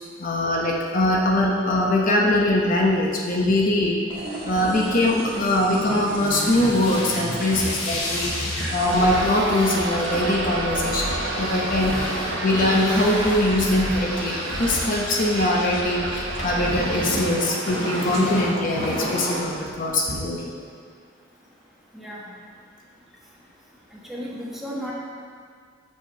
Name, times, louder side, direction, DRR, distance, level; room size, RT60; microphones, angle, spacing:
voice 1, 0.2-4.0 4.4-12.1 12.4-20.5, left 1 dB, 45° left, -1 dB, 0.8 m, -22 dB
sound 1, 4.1-17.3, equal, 25° right, 1.6 m, -33 dB
sound 2, 6.0-15.8 16.1-20.1, left 1 dB, 80° left, 1.9 m, -33 dB
Crowd, 8.8-18.2, right 2 dB, 70° right, 0.9 m, -31 dB
voice 2, 24.1-24.9, equal, ahead, -5 dB, 1.2 m, -33 dB
6.4 x 5.1 x 6.7 m, 2.1 s
head